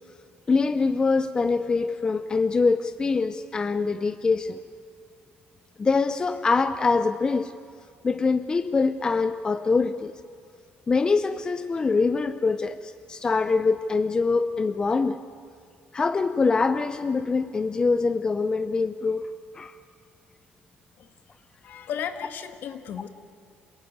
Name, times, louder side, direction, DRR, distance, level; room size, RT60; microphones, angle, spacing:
voice 1, 0.5-4.6 5.8-7.5 8.0-10.1 10.9-15.2 15.9-19.2 19.5-19.8, left 4 dB, 20° left, 11 dB, 0.6 m, -24 dB
voice 2, 21.6-23.1, left 8 dB, 60° left, 9 dB, 1.7 m, -34 dB
27.5 x 16.5 x 9.5 m, 2.4 s
cardioid pair, 135°, 4 cm